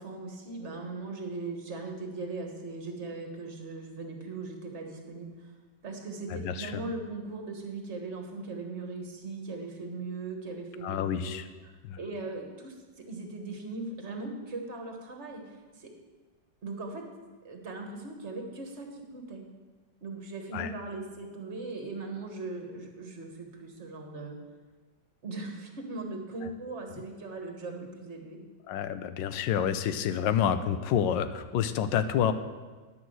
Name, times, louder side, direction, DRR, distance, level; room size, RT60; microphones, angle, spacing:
voice 1, 0.0-5.5 5.8-11.3 11.6-11.7 12.0-15.9 16.6-17.1 17.4-19.4 20.0-24.4 25.2-28.4, right 3 dB, 40° right, 3 dB, 1.6 m, -39 dB
voice 2, 6.3-6.8 10.8-11.4 11.8-12.0 20.5-20.7 28.7-32.3, left 9 dB, 80° left, 11 dB, 1.3 m, -28 dB
10.0 x 6.0 x 7.8 m, 1.3 s
omnidirectional pair, 2.0 m